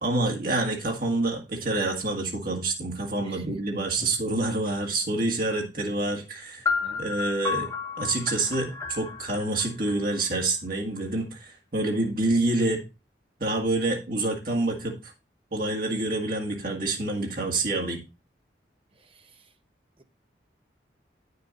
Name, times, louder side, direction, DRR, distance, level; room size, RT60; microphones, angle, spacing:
voice 1, 0.0-6.7 7.0-7.7 8.0-12.8 13.4-15.1 15.5-18.0, right 2 dB, 50° right, 2.1 m, -27 dB
voice 2, 3.2-4.1 6.8-7.0 19.0-19.3, right 1 dB, 30° right, 0.8 m, -44 dB
sound 1, 6.6-10.5, left 5 dB, 15° left, 0.9 m, -32 dB
9.2 x 6.7 x 4.1 m
head